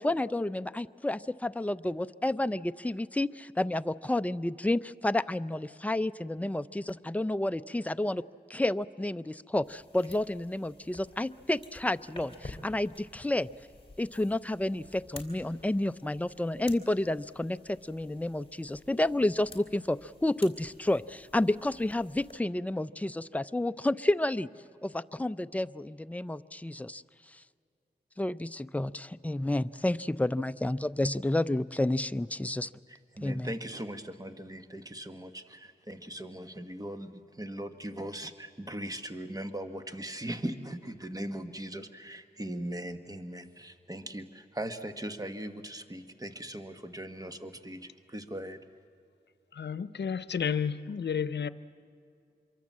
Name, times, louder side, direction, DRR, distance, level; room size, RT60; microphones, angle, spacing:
voice 1, 0.0-8.2 8.5-13.5 14.0-24.5 24.8-27.0 27.3-27.4 28.2-32.7 33.2-33.5, left 1 dB, 10° left, 12 dB, 0.5 m, -30 dB
sound 1, 9.6-22.4, left 2 dB, 30° left, 3.2 m, -52 dB
voice 2, 32.9-48.6, right 1 dB, 20° right, 7 dB, 1.5 m, -39 dB
voice 3, 49.5-51.5, left 7 dB, 85° left, 14 dB, 0.7 m, -31 dB
26.0 x 23.0 x 7.5 m, 2.4 s
wide cardioid pair, 65°, 17 cm